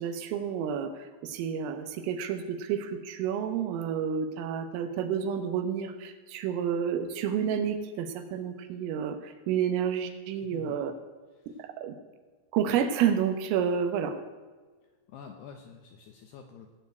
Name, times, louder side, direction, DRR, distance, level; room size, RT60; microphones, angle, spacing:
voice 1, 0.0-10.9 11.5-12.0 12.5-14.2, right 8 dB, 80° right, 8 dB, 3.7 m, -30 dB
voice 2, 10.4-10.8 11.4-11.6 15.1-16.7, left 6 dB, 75° left, 4 dB, 2.5 m, -48 dB
17.5 x 7.2 x 8.0 m, 1.4 s
omnidirectional pair, 5.9 m